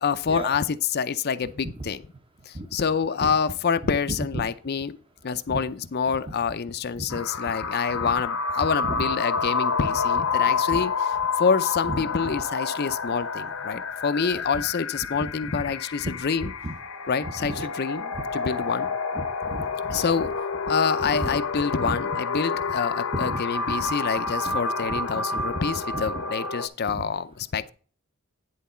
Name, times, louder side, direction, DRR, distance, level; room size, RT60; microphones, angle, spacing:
voice 1, 0.0-2.0 2.5-5.0 5.2-11.1 11.4-16.5 17.1-18.9 19.9-20.3 20.7-27.7, left 6 dB, 50° left, 0.5 m, -27 dB
voice 2, 4.1-4.5 5.5-5.6 7.0-7.2 7.9-8.1 8.9-9.0 10.2-10.3 10.7-10.8 11.8-12.3 14.2-14.3 15.2-15.7 16.0-16.1 16.4-16.7 17.2-17.7 18.1-18.2 19.1-20.2 21.0-21.3 21.8-22.0 23.1-23.4 23.8-23.9 24.5-24.6 24.9-25.0 25.9-26.2 26.9-27.0, right 1 dB, 25° right, 0.9 m, -34 dB
sound 1, 7.1-26.7, left 4 dB, 80° left, 1.0 m, -29 dB
10.5 x 4.0 x 5.6 m
head